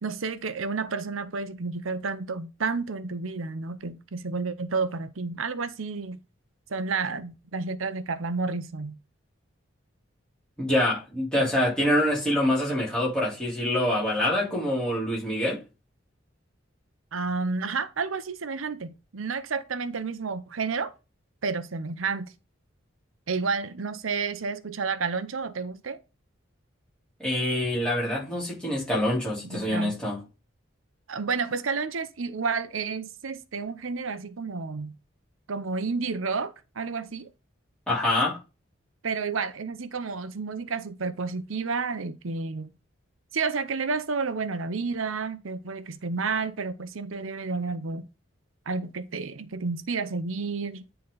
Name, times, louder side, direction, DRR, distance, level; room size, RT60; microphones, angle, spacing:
voice 1, 0.0-6.2 6.7-9.0 17.1-20.9 21.4-22.3 23.3-26.0 29.4-29.9 31.1-34.9 35.5-37.3 39.0-42.7 43.3-48.1 48.7-50.8, right 4 dB, 85° right, 0.7 m, -31 dB
voice 2, 10.6-15.6 27.2-30.2 37.9-38.4, left 1 dB, 5° left, 3.6 m, -25 dB
9.7 x 4.0 x 3.9 m
head